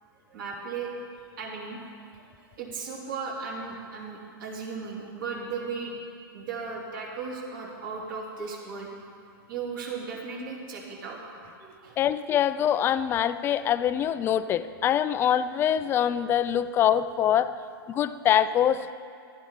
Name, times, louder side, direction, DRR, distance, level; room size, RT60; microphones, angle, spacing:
voice 1, 0.3-0.9 1.4-1.8 2.2-2.3 2.6-5.9 6.3-8.9 9.5-11.2 11.6-12.0, right 5 dB, 60° right, -3 dB, 3.4 m, -36 dB
voice 2, 12.0-17.5 17.9-18.9, left 10 dB, 20° left, 13 dB, 0.4 m, -24 dB
16.0 x 12.0 x 3.8 m, 2.2 s
hypercardioid pair, 140°, 13 cm